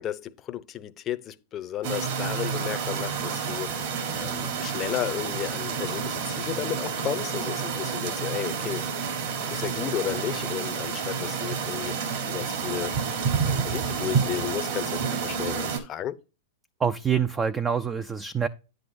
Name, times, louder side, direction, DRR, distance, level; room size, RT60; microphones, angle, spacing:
voice 1, 0.0-3.7 4.1-8.9 9.5-13.0 13.4-16.2, left 11 dB, 30° left, 0.7 m, -33 dB
sound 1, 1.8-15.8, right 6 dB, 60° right, 3.6 m, -29 dB
voice 2, 16.8-18.5, right 7 dB, 20° right, 0.5 m, -26 dB
9.7 x 7.9 x 2.6 m
hypercardioid pair, 125°, 0 cm